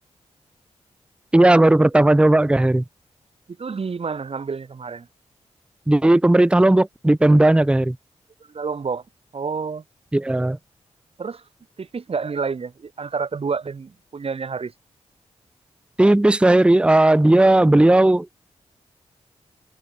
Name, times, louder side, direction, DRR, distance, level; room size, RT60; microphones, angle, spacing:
voice 1, 1.3-2.8 5.9-8.0 10.1-10.6 16.0-18.4, right 1 dB, 10° right, 0.6 m, -15 dB
voice 2, 3.6-5.1 8.5-9.0 9.3-9.8 11.2-11.4 11.8-14.7, right 5 dB, 55° right, 4.0 m, -29 dB
cardioid pair, 60°, 12 cm